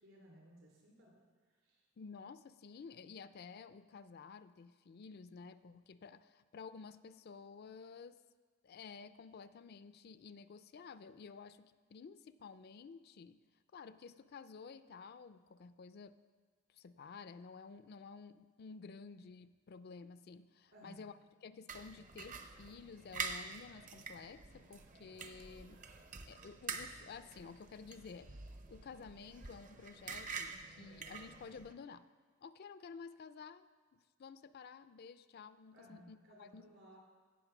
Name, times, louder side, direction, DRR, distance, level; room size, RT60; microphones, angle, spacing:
voice 1, 0.0-1.2 1.6-1.8 20.7-21.0 35.7-37.0, equal, 65° right, -1 dB, 3.6 m, -59 dB
voice 2, 2.0-8.2 8.6-13.4 13.7-16.2 16.7-25.8 26.3-32.1 32.4-33.7 33.9-36.7, left 5 dB, 50° left, 13 dB, 0.4 m, -52 dB
sound 1, 21.7-31.7, right 4 dB, 40° right, 0.7 m, -47 dB
16.5 x 5.8 x 6.0 m, 1.5 s
head